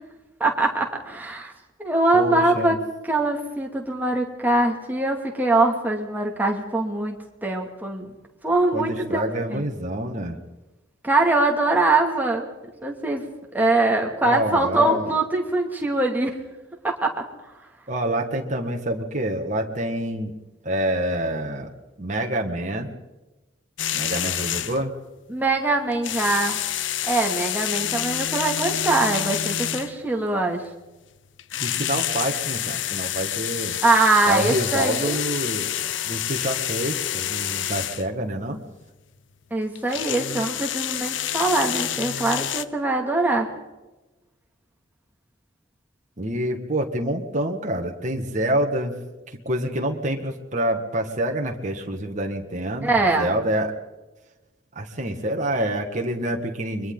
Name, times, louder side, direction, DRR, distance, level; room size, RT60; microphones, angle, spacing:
voice 1, 0.4-1.5 1.8-2.8 3.0-8.1 8.4-9.2 9.5-9.6 11.0-12.5 12.8-13.2 13.5-16.4 16.8-17.1 25.3-26.6 27.1-30.6 33.8-35.2 39.5-43.5 52.8-53.4, right 2 dB, 10° right, 0 dB, 2.6 m, -22 dB
voice 2, 2.1-2.7 8.7-10.4 14.2-15.2 17.9-20.3 20.6-21.7 22.0-22.9 23.9-24.9 31.6-33.8 34.3-38.6 46.2-49.0 49.4-53.8 54.8-56.9, right 1 dB, 40° right, 2 dB, 1.9 m, -27 dB
sound 1, 23.8-24.9 25.9-30.1 31.4-38.1 39.8-42.7, left 11 dB, 70° left, 0.7 m, -28 dB
30.0 x 23.0 x 4.0 m, 1.1 s
head